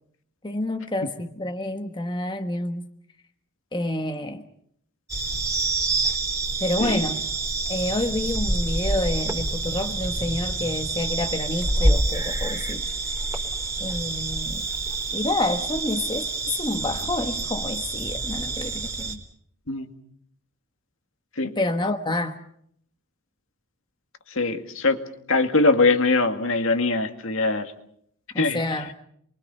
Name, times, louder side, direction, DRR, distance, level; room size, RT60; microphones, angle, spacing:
voice 1, 0.4-2.9 3.7-4.4 6.0-6.2 6.6-7.2 7.7-12.8 13.8-14.6 15.1-19.2 21.5-22.4 28.3-28.9, left 1 dB, 20° left, 5 dB, 1.4 m, -28 dB
sound 1, 5.1-19.2, right 2 dB, 15° right, 3.7 m, -27 dB
voice 2, 24.4-25.0 25.3-27.7 28.4-28.8, left 3 dB, 65° left, 6 dB, 2.1 m, -22 dB
28.5 x 23.0 x 5.7 m, 0.68 s
head